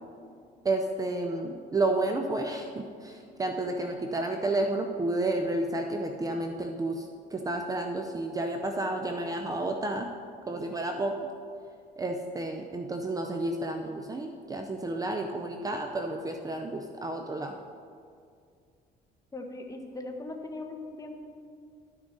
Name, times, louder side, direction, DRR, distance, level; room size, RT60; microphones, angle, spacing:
voice 1, 0.6-10.1 10.5-11.3 12.0-17.5, right 2 dB, 20° right, 4 dB, 0.6 m, -31 dB
voice 2, 19.3-21.2, left 2 dB, 20° left, 3 dB, 1.1 m, -39 dB
12.5 x 6.2 x 4.0 m, 2.2 s
cardioid pair, 110°, 17 cm